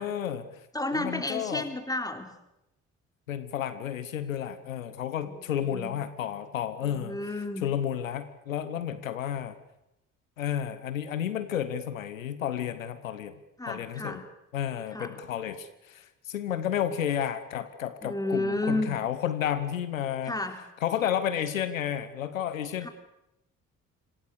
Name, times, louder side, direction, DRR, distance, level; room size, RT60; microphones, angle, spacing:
voice 1, 0.0-0.7 0.9-1.7 3.3-7.2 7.6-9.6 10.4-13.4 13.7-14.2 14.5-20.3 20.8-22.9, left 9 dB, 80° left, 13 dB, 1.1 m, -31 dB
voice 2, 0.7-2.3 5.2-5.4 5.7-5.9 6.8-7.7 13.6-14.2 14.9-15.2 18.0-19.0 20.3-20.6 22.8-22.9, left 2 dB, 10° left, 6 dB, 3.6 m, -32 dB
26.5 x 18.0 x 8.2 m, 0.87 s
figure-of-eight pair, 45°, 39 cm